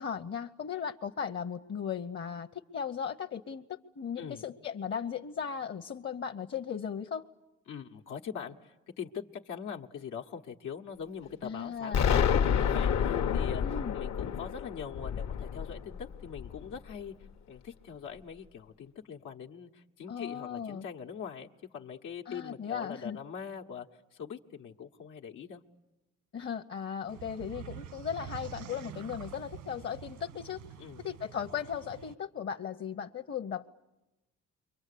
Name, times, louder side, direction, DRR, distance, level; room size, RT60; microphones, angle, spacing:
voice 1, 0.0-2.5 2.7-7.2 11.4-12.3 13.6-14.0 20.1-20.8 22.3-23.2 26.3-30.6 31.0-33.7, left 7 dB, 40° left, 6 dB, 0.9 m, -37 dB
voice 2, 7.7-17.1 17.5-25.6 30.8-31.0, left 7 dB, 85° left, 2 dB, 1.3 m, -42 dB
Explosion, 11.9-16.8, left 7 dB, 65° left, 1.1 m, -29 dB
sound 1, 27.1-32.1, right 9 dB, 90° right, 1.5 m, -46 dB
29.0 x 23.5 x 8.4 m, 1.0 s
cardioid pair, 90°, 30 cm